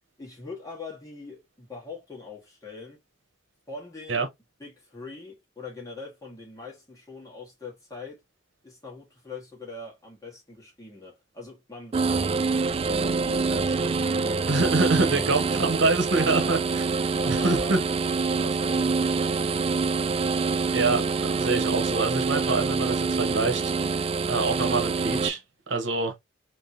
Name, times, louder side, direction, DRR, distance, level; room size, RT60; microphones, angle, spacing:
voice 1, 0.2-3.0 3.7-4.2 4.6-8.2 8.6-12.2 12.7-15.7 16.3-16.6 17.2-18.0 18.2-19.6, left 3 dB, 20° left, 1.7 m, -42 dB
sound 1, 11.9-25.3, right 4 dB, 30° right, 0.3 m, -26 dB
voice 2, 14.5-16.9 17.3-17.8 20.7-25.4 25.7-26.1, right 3 dB, 65° right, 1.1 m, -26 dB
3.6 x 3.0 x 2.8 m
head